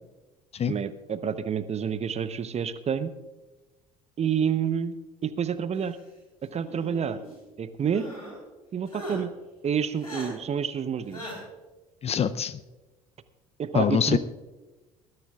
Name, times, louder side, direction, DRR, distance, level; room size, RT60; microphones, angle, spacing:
voice 1, 0.7-3.1 4.2-4.9 5.2-6.0 6.4-7.2 7.6-8.1 8.7-9.3 9.6-11.2 13.6-14.2, right 7 dB, 35° right, 13 dB, 0.9 m, -28 dB
sound 1, 6.5-7.3 7.9-8.4 8.9-9.2 10.0-10.3 11.1-11.4, equal, 90° left, 4.0 m, -40 dB
voice 2, 12.0-12.6 13.7-14.2, left 8 dB, 35° left, 14 dB, 0.7 m, -24 dB
20.5 x 14.0 x 2.4 m, 1.1 s
figure-of-eight pair, 55°, 19 cm